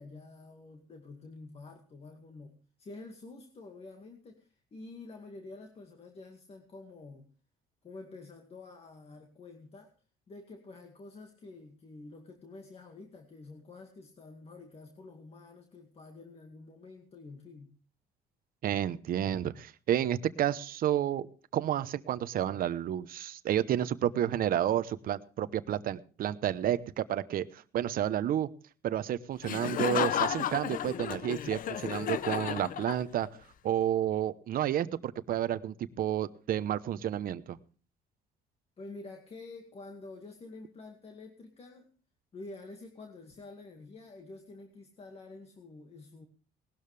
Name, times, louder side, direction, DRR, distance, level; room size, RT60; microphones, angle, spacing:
voice 1, 0.0-7.3 7.8-9.9 10.3-17.7 38.8-41.9 42.3-46.3, left 3 dB, 35° left, 4 dB, 2.1 m, -48 dB
voice 2, 18.6-21.3 21.5-28.5 28.8-33.3 33.6-37.6, right 11 dB, 60° right, 14 dB, 0.9 m, -30 dB
Laughter, 29.4-33.4, left 10 dB, 55° left, 0.7 m, -33 dB
19.0 x 12.5 x 3.4 m, 0.38 s
cardioid pair, 110°, 17 cm